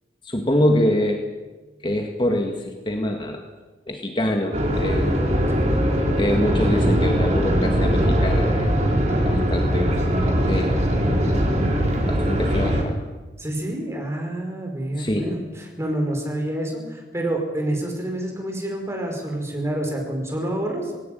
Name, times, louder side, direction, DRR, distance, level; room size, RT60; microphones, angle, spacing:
voice 1, 0.2-1.2 1.8-3.4 3.9-5.2 6.2-10.0 10.5-10.9 12.1-13.0 15.0-15.3, left 1 dB, 30° left, 3 dB, 1.9 m, -25 dB
sound 1, 4.5-12.8, equal, 40° right, 4.0 m, -21 dB
voice 2, 13.4-21.0, right 1 dB, 15° right, 2 dB, 5.0 m, -28 dB
19.0 x 18.0 x 9.2 m, 1.2 s
head